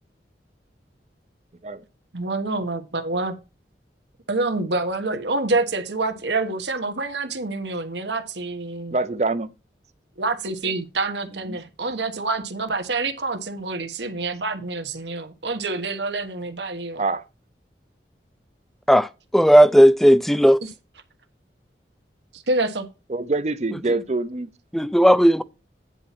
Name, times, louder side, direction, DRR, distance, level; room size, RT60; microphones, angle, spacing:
voice 1, 2.1-3.4 4.3-9.0 10.2-17.0 20.6-20.7 22.3-22.9, right 3 dB, 80° right, 1.3 m, -27 dB
voice 2, 8.9-9.5 11.5-11.6 17.0-17.2 23.1-24.5, right 3 dB, 40° right, 0.6 m, -25 dB
voice 3, 18.9-20.6 24.7-25.4, equal, ahead, 0.4 m, -15 dB
9.9 x 4.2 x 5.8 m
head